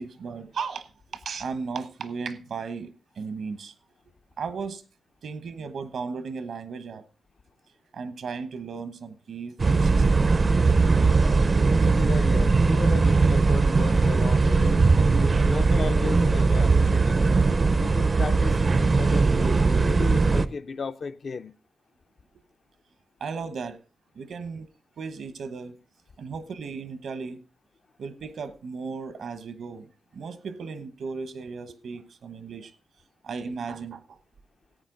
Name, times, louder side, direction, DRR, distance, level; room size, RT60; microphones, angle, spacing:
voice 1, 0.0-3.7 4.4-4.8 5.2-7.0 7.9-10.0 10.3-10.8 17.0-17.1 23.2-23.8 24.1-24.7 25.0-25.8 26.2-27.4 28.0-32.7 33.2-34.2, right 5 dB, 80° right, 1.1 m, -36 dB
sound 1, 9.6-20.5, right 4 dB, 35° right, 0.5 m, -20 dB
voice 2, 11.7-17.1 17.8-21.5, left 5 dB, 50° left, 0.5 m, -35 dB
14.0 x 9.0 x 3.9 m
wide cardioid pair, 160°, 0 cm